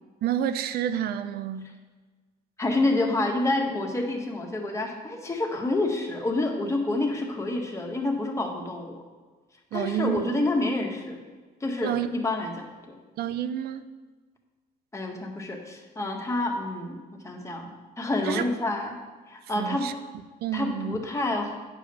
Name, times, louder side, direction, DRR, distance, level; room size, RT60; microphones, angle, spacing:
voice 1, 0.2-1.7 9.7-10.5 11.8-12.1 13.2-13.8 18.2-18.4 19.6-19.9 20.4-20.9, right 10 dB, 65° right, 12 dB, 0.6 m, -29 dB
voice 2, 2.6-9.0 9.7-11.2 11.6-13.0 14.9-17.7 18.0-19.0 19.3-19.9 20.5-21.5, left 2 dB, 15° left, 1 dB, 1.6 m, -28 dB
9.1 x 5.0 x 6.8 m, 1.4 s
cardioid pair, 110°, 17 cm